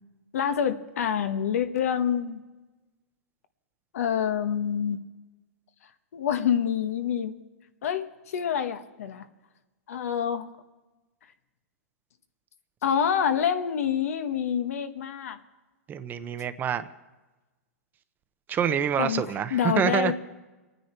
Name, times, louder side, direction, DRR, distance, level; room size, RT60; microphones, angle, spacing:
voice 1, 0.3-2.4 3.9-5.0 6.1-7.4 7.8-9.3 9.9-10.5 12.8-15.4 19.0-19.2 19.5-20.1, left 8 dB, 75° left, 9 dB, 1.1 m, -27 dB
voice 2, 15.9-16.9 18.5-20.1, right 8 dB, 25° right, 11 dB, 0.7 m, -26 dB
27.0 x 9.7 x 4.4 m, 1.2 s
hypercardioid pair, 130°, 8 cm